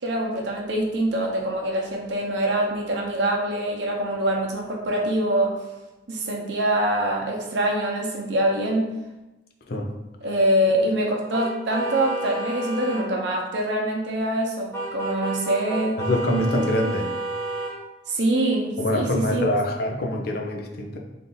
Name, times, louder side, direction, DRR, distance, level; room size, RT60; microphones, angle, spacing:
voice 1, 0.0-5.5 6.1-8.9 10.2-16.0 18.1-19.5, right 1 dB, 70° right, -1 dB, 0.8 m, -24 dB
sound 1, 11.3-13.0 14.7-17.7, right 2 dB, 15° left, 0.8 m, -30 dB
voice 2, 16.0-17.1 18.8-21.0, left 1 dB, 55° left, 2 dB, 0.6 m, -24 dB
3.6 x 2.6 x 3.8 m, 1.0 s
head